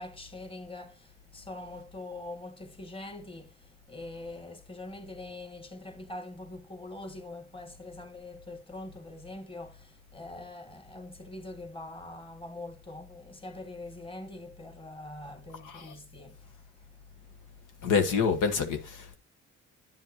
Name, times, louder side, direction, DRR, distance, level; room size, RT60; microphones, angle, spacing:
voice 1, 0.0-16.6, left 2 dB, 20° left, 1.5 m, -43 dB
voice 2, 15.6-15.9 17.8-19.2, left 5 dB, 85° left, 1.3 m, -27 dB
9.7 x 7.5 x 2.9 m
cardioid pair, 90°, 30 cm